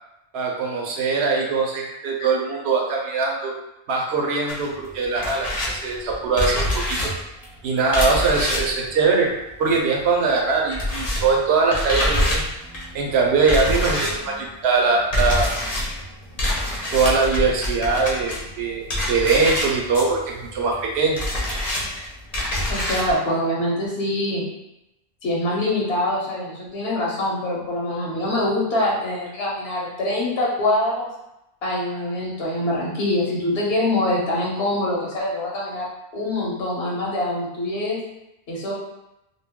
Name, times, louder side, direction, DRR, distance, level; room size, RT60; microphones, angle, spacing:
voice 1, 0.3-3.5 3.9-7.1 7.6-9.3 9.6-12.4 12.9-15.6 16.9-21.2, right 4 dB, 85° right, 0 dB, 0.9 m, -22 dB
sound 1, 4.5-10.0 10.3-23.1, left 1 dB, 40° left, 0.7 m, -26 dB
voice 2, 22.7-24.5 25.2-31.1 31.6-35.9 36.1-38.0 38.5-38.7, left 1 dB, 80° left, -4 dB, 1.0 m, -24 dB
2.3 x 2.2 x 3.4 m, 0.88 s
omnidirectional pair, 1.0 m